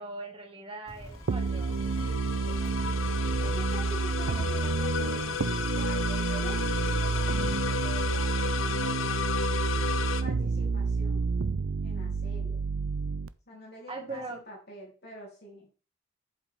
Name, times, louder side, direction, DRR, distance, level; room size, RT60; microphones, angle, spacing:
voice 1, 0.0-2.2 13.9-14.4, right 2 dB, 25° right, 1 dB, 2.1 m, -41 dB
sound 1, 0.9-8.3, right 1 dB, 15° left, 2.2 m, -46 dB
sound 2, 1.1-10.2, left 6 dB, 75° left, 0.8 m, -33 dB
sound 3, 1.3-13.3, right 4 dB, 85° right, 0.5 m, -29 dB
voice 2, 2.5-3.1 3.4-5.4 5.7-9.3 10.2-11.3 11.8-12.6 13.5-15.7, equal, 55° left, -4 dB, 3.7 m, -46 dB
8.1 x 7.7 x 3.7 m, 0.35 s
head